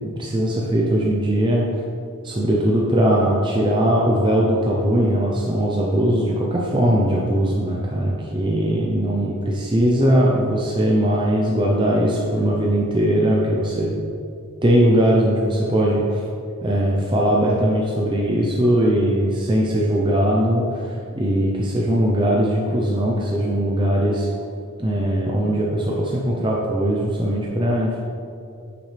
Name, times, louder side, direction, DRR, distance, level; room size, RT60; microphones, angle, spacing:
voice 1, 0.2-1.8 2.2-13.9 14.6-16.2 16.6-24.3 24.8-28.0, right 1 dB, 20° right, -3 dB, 0.6 m, -20 dB
8.4 x 6.9 x 3.3 m, 2.5 s
head